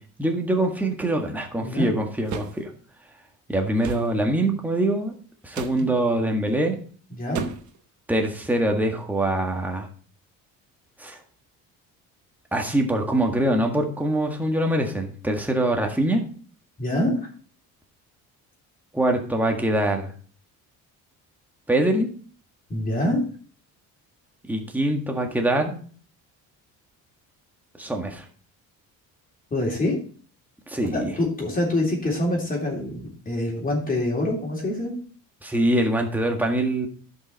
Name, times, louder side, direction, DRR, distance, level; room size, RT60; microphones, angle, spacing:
voice 1, 0.2-2.7 3.5-5.1 5.4-6.8 8.1-9.9 11.0-11.2 12.5-16.2 18.9-20.1 21.7-22.1 24.5-25.8 27.8-28.3 30.7-31.1 35.4-36.9, right 1 dB, 5° right, 2 dB, 1.7 m, -24 dB
voice 2, 1.6-1.9 5.8-5.9 7.2-7.4 16.8-17.1 22.7-23.2 29.5-30.0 30.9-34.9, left 1 dB, 25° left, -1 dB, 3.4 m, -25 dB
sound 1, 2.3-2.6 3.8-4.1 5.5-5.8 7.3-7.8, right 7 dB, 55° right, 1.1 m, -32 dB
11.5 x 5.6 x 4.2 m, 0.44 s
cardioid pair, 125°, 35 cm